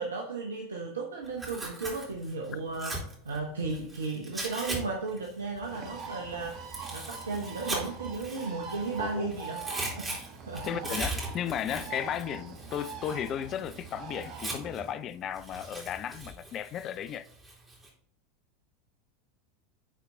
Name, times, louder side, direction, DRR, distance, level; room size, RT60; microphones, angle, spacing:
voice 1, 0.0-3.0 3.2-11.0, right 3 dB, 75° right, 0.9 m, -35 dB
Tearing, 1.2-4.8 5.1-9.0 9.3-14.9 15.3-17.9, right 2 dB, 15° right, 3.0 m, -39 dB
Bird, 5.6-14.9, right 5 dB, 45° right, 1.3 m, -43 dB
voice 2, 9.0-9.5 10.6-17.3, left 9 dB, 35° left, 0.4 m, -35 dB
9.6 x 4.4 x 3.8 m
figure-of-eight pair, 80°, 0 cm